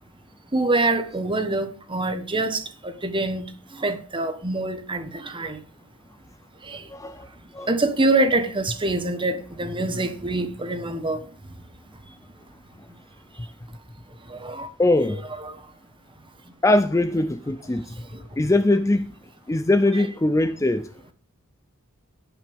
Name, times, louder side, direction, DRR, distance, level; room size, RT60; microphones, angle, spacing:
voice 1, 0.5-5.6 6.6-6.9 7.7-11.3 14.3-14.7 15.4-15.6 18.1-18.2 19.9-20.1, right 2 dB, 25° right, 1.2 m, -25 dB
voice 2, 6.9-7.3 7.5-7.7 14.8-15.2 16.6-17.9 18.4-19.1 19.5-20.9, left 2 dB, 15° left, 0.4 m, -21 dB
17.5 x 6.0 x 3.5 m
head